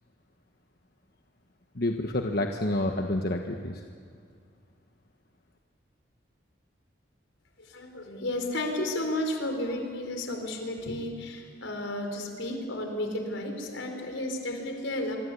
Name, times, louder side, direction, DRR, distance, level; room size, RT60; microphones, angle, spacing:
voice 1, 1.7-3.8, left 1 dB, 55° left, 3 dB, 1.3 m, -28 dB
voice 2, 7.6-15.2, left 1 dB, 85° left, 4 dB, 4.6 m, -32 dB
25.5 x 25.0 x 8.5 m, 2.2 s
head